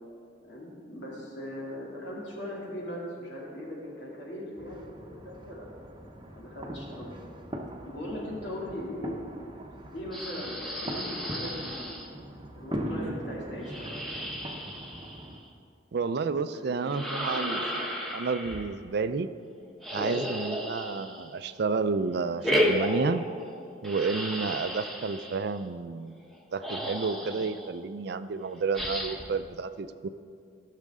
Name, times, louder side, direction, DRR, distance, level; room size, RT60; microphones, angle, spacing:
voice 1, 0.4-5.6 6.3-7.1 7.9-9.3 9.9-12.0 12.5-14.1 16.5-18.0, left 1 dB, 75° left, -4 dB, 2.6 m, -39 dB
sound 1, 4.6-15.4, right 1 dB, 25° right, 0.8 m, -40 dB
sound 2, 10.1-12.1 13.6-15.4 16.9-18.7 19.8-21.5 22.4-23.5 23.8-25.4 26.3-26.4 26.6-27.7 28.7-29.3, equal, ahead, 1.1 m, -33 dB
voice 2, 15.9-17.6 18.1-19.3 19.9-23.2 23.8-26.2 26.5-30.1, right 4 dB, 65° right, 12 dB, 0.4 m, -30 dB
15.5 x 6.6 x 3.6 m, 2.4 s
head